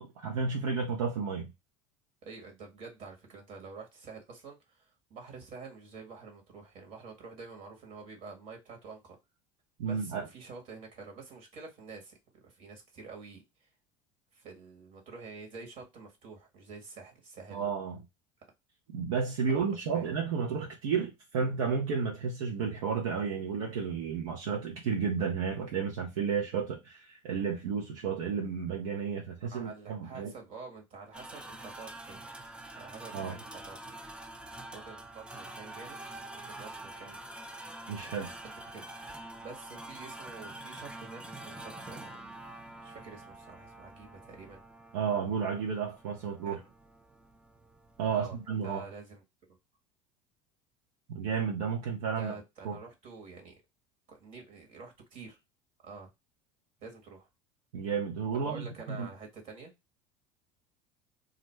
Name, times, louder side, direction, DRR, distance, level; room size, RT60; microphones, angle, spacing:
voice 1, 0.0-1.5 9.8-10.3 17.5-18.0 18.9-30.3 33.1-33.4 37.9-38.3 44.9-46.6 48.0-48.8 51.1-52.3 52.6-52.8 57.7-59.1, right 6 dB, 80° right, 0.8 m, -32 dB
voice 2, 2.2-9.2 9.8-12.1 12.4-13.7 14.3-17.7 19.5-20.1 29.4-32.3 32.7-34.0 34.7-36.0 36.3-37.2 38.0-42.2 42.8-44.6 46.4-46.7 48.1-48.4 48.6-49.2 49.5-49.6 52.2-53.6 54.1-55.4 55.8-56.1 56.8-57.3 58.3-59.7, right 4 dB, 55° right, 1.3 m, -48 dB
sound 1, 31.1-48.7, right 2 dB, 5° right, 0.4 m, -46 dB
2.5 x 2.1 x 3.2 m
hypercardioid pair, 75°, 16 cm